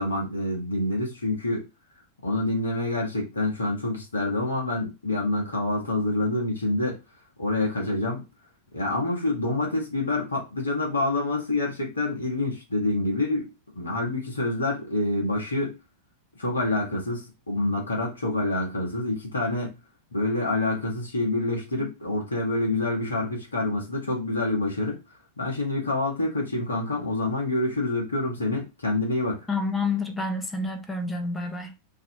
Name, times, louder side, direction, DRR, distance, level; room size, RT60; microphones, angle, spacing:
voice 1, 0.0-1.7 2.2-7.0 7.4-8.2 8.7-13.5 13.7-15.8 16.4-19.8 20.1-25.0 25.4-29.4, left 2 dB, 75° left, 1.3 m, -27 dB
voice 2, 29.5-31.7, left 3 dB, 10° left, 0.7 m, -28 dB
3.1 x 2.7 x 2.9 m
figure-of-eight pair, 90°, 0 cm